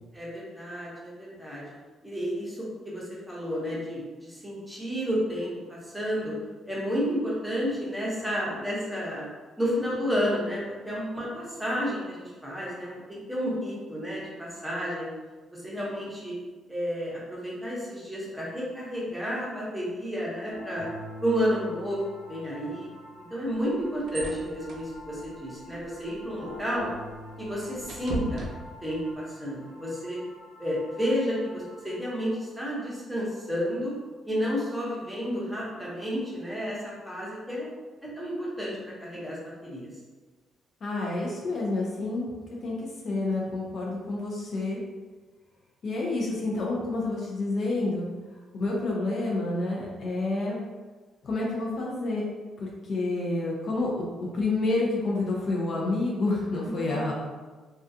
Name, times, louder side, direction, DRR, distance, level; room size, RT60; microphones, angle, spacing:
voice 1, 0.1-1.6 2.0-6.3 6.7-9.3 9.6-15.1 15.5-16.3 16.7-20.9 21.2-22.0 22.3-22.9 23.3-26.9 27.4-28.5 28.8-30.2 30.6-33.9 34.2-37.7 38.0-39.4 39.6-39.9 56.6-57.1, equal, 5° right, -7 dB, 0.9 m, -31 dB
sound 1, 20.5-31.9, left 1 dB, 90° left, 0.8 m, -46 dB
sound 2, 23.4-29.2, right 2 dB, 70° right, 0.4 m, -40 dB
voice 2, 40.8-42.3 42.6-44.8 45.8-48.1 48.5-50.6 51.2-52.3 52.6-57.1, left 2 dB, 55° left, -3 dB, 0.5 m, -29 dB
2.3 x 2.3 x 2.7 m, 1.3 s
cardioid pair, 90°, 0 cm